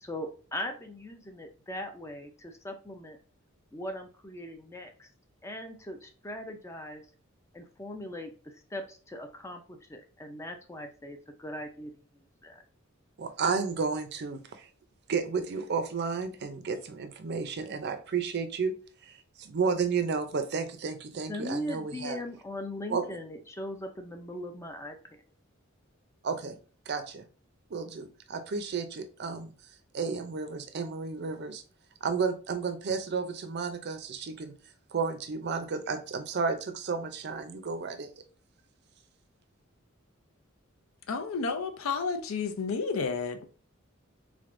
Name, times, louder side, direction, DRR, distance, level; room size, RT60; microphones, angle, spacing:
voice 1, 0.0-3.2 3.7-5.1 5.4-7.0 7.5-12.6 21.3-25.0, left 1 dB, 15° left, 0.4 m, -40 dB
voice 2, 13.2-14.7 15.1-18.7 19.0-22.2 22.9-23.1 26.2-26.6 26.9-27.3 27.7-29.5 29.9-31.6 32.0-34.5 34.9-38.2, right 5 dB, 55° right, 0.5 m, -32 dB
voice 3, 41.1-43.5, left 4 dB, 80° left, 0.6 m, -31 dB
3.6 x 3.3 x 2.5 m
head